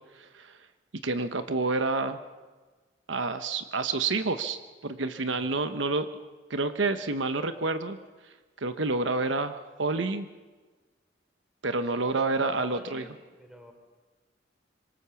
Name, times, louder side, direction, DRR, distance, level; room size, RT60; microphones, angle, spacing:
voice 1, 0.2-0.5 1.0-2.2 3.1-6.1 6.5-8.0 8.6-10.3 11.6-13.0, right 3 dB, 80° right, 9 dB, 1.1 m, -28 dB
voice 2, 11.9-13.7, equal, 5° right, 5 dB, 3.5 m, -47 dB
26.0 x 24.5 x 7.1 m, 1.3 s
head